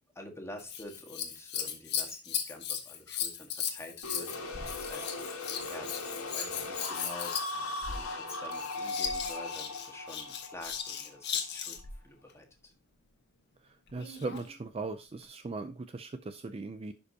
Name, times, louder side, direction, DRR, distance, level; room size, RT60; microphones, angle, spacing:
voice 1, 0.1-5.9 6.3-7.4 7.8-12.7, left 1 dB, 10° left, 2 dB, 1.6 m, -48 dB
Scissors, 0.6-12.0 13.9-14.5 15.2-15.3, left 8 dB, 50° left, 1.3 m, -37 dB
sound 1, 4.0-11.7, left 2 dB, 70° left, 2.0 m, -39 dB
voice 2, 13.6-16.9, right 3 dB, 25° right, 10 dB, 0.4 m, -39 dB
11.0 x 5.1 x 2.8 m, 0.28 s
head